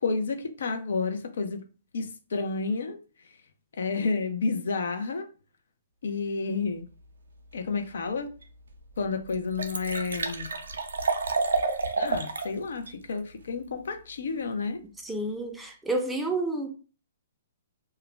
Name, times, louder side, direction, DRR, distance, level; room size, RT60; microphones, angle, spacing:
voice 1, 0.0-1.6 1.9-3.0 3.8-5.3 6.0-6.9 7.5-8.3 9.0-10.5 12.0-14.8, left 4 dB, 75° left, 0.5 m, -30 dB
Liquid, 8.4-8.5 9.0-9.1 9.3-12.5 12.9-13.0, right 3 dB, 90° right, 0.4 m, -29 dB
voice 2, 15.0-16.7, right 2 dB, 5° right, 0.4 m, -30 dB
2.3 x 2.0 x 3.2 m
hypercardioid pair, 140°, 0 cm